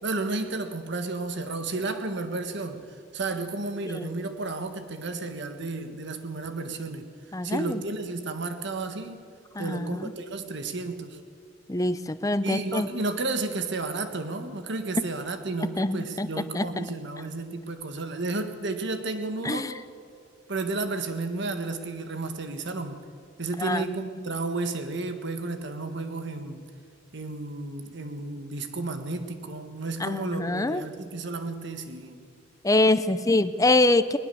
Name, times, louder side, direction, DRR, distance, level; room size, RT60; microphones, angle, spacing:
voice 1, 0.0-2.8 3.1-7.1 7.4-9.2 9.6-11.2 12.4-19.7 20.5-23.0 23.4-26.6 27.1-32.2, right 3 dB, 60° right, 8 dB, 1.5 m, -32 dB
voice 2, 7.3-7.8 9.5-10.1 11.7-12.9 15.8-16.7 19.4-19.7 23.6-24.3 30.0-30.8 32.6-34.2, left 2 dB, 15° left, 12 dB, 0.6 m, -25 dB
20.0 x 20.0 x 7.0 m, 2.3 s
head